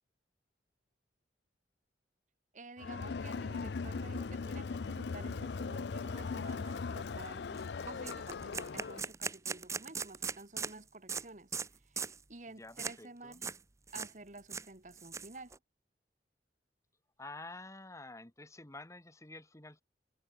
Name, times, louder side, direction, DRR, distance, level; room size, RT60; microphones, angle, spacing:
voice 1, 2.5-11.6 11.8-13.4 13.9-15.6, right 2 dB, 45° right, 2.1 m, -51 dB
Crowd, 2.8-9.1, left 4 dB, 70° left, 0.5 m, -39 dB
sound 1, 6.7-6.8 7.1-7.3 7.6-7.7 8.0-10.7 11.1-11.2 11.5-11.7 12.0-12.2 12.8-13.0 13.3-13.6 13.9-14.1 14.4-15.6, right 5 dB, 15° right, 0.6 m, -39 dB
voice 2, 12.6-13.4 17.2-19.8, left 2 dB, 15° left, 1.8 m, -49 dB
open air
head